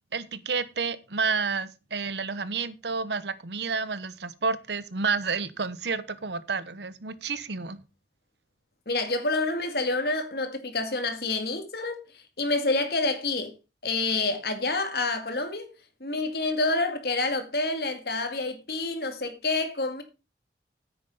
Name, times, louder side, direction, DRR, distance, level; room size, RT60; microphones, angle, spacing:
voice 1, 0.1-7.8, right 4 dB, 80° right, 1.0 m, -30 dB
voice 2, 8.9-12.0 12.4-13.5 13.8-15.7 16.0-20.0, left 3 dB, 65° left, 2.3 m, -28 dB
10.0 x 8.5 x 5.4 m
head